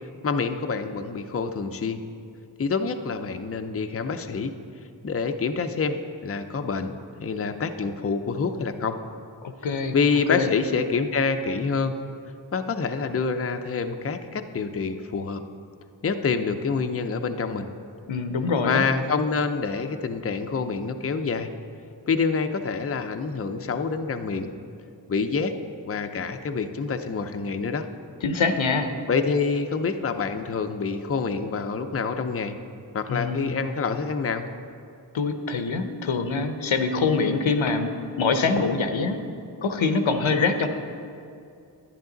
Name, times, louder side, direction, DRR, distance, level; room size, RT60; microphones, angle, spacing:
voice 1, 0.2-2.0 2.6-4.5 5.0-6.9 7.2-9.0 9.9-12.0 12.5-15.4 16.0-17.7 18.7-21.5 22.1-24.5 25.1-25.5 25.8-27.9 29.1-32.6 32.9-34.5, left 5 dB, 30° left, 7 dB, 0.6 m, -27 dB
voice 2, 9.4-9.9 10.3-10.5 18.1-18.8 28.2-28.9 33.1-33.5 35.1-37.9 38.2-39.2 39.6-40.7, left 4 dB, 85° left, 7 dB, 0.8 m, -24 dB
10.5 x 10.0 x 3.9 m, 2.5 s
wide cardioid pair, 50°, 46 cm